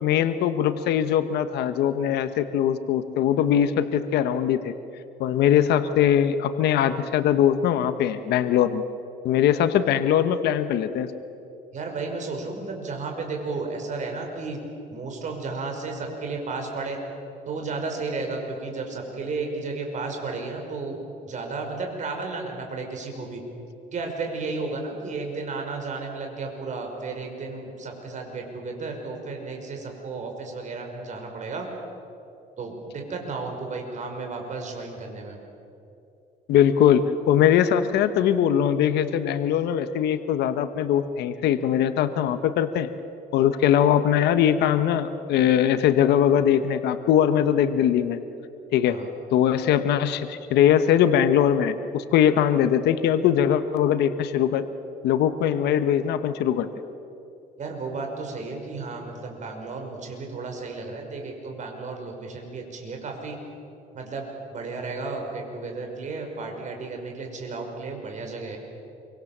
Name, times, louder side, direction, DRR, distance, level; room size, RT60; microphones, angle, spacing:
voice 1, 0.0-4.7 5.2-8.8 9.2-11.1 36.5-42.9 43.3-48.2 48.7-49.0 49.3-54.7 55.0-56.7, left 9 dB, 80° left, 10 dB, 1.2 m, -21 dB
voice 2, 11.7-17.0 17.5-21.0 21.3-23.4 23.9-31.7 32.6-35.4 48.8-49.1 57.6-63.4 63.9-68.6, right 3 dB, 45° right, 2 dB, 5.7 m, -33 dB
27.0 x 24.5 x 7.5 m, 2.7 s
cardioid pair, 110°, 17 cm